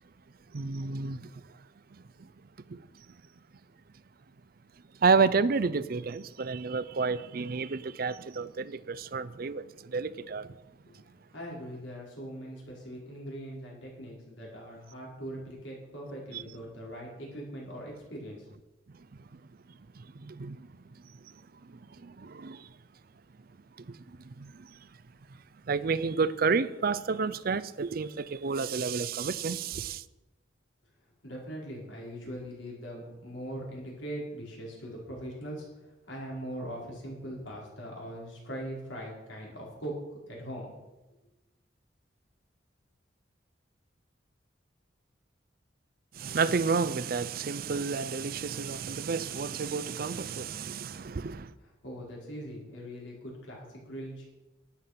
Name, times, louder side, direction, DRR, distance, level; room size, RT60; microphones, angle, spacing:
voice 1, 0.5-1.4 1.9-2.3 2.7-2.9 5.0-10.6 16.3-16.4 19.0-19.1 19.7-20.7 21.0-21.4 21.7-22.7 23.8-24.9 25.7-30.0 46.1-51.5, right 5 dB, 50° right, 0.5 m, -31 dB
voice 2, 11.3-18.5 31.2-40.7 51.6-54.3, equal, 90° left, 4.7 m, -41 dB
11.5 x 9.5 x 5.9 m
head